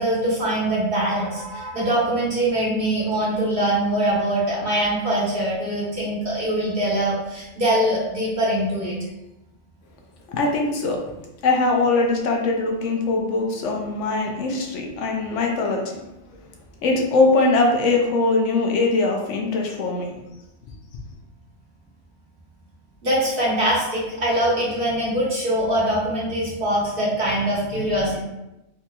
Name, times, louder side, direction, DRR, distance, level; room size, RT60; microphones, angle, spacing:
voice 1, 0.0-9.0 23.0-28.2, right 1 dB, 50° right, -6 dB, 1.2 m, -23 dB
voice 2, 10.3-11.0 11.4-16.0 16.8-20.1, left 3 dB, 75° left, 1 dB, 0.9 m, -21 dB
4.1 x 2.8 x 2.2 m, 0.94 s
omnidirectional pair, 1.3 m